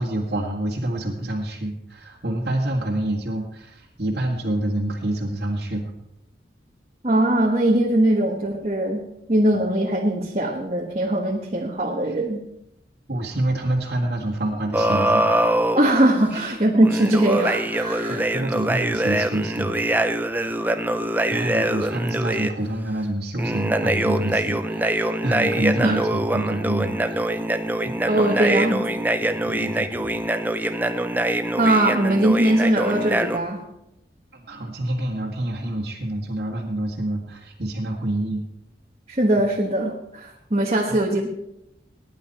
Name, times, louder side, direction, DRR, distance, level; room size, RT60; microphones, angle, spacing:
voice 1, 0.0-5.9 13.1-15.2 16.3-16.6 18.1-19.8 21.3-27.3 27.8-27.9 29.2-30.2 34.3-38.5 40.9-41.0, right 1 dB, 65° right, -3 dB, 1.9 m, -27 dB
voice 2, 7.0-9.0 9.3-12.4 15.7-18.2 25.8-26.0 28.1-28.8 31.6-33.6 39.1-41.3, right 1 dB, 35° right, -2 dB, 1.4 m, -21 dB
sound 1, 14.7-15.8 16.8-22.5 23.4-33.4, right 1 dB, 10° right, 0.6 m, -24 dB
19.5 x 10.5 x 4.3 m, 0.85 s
head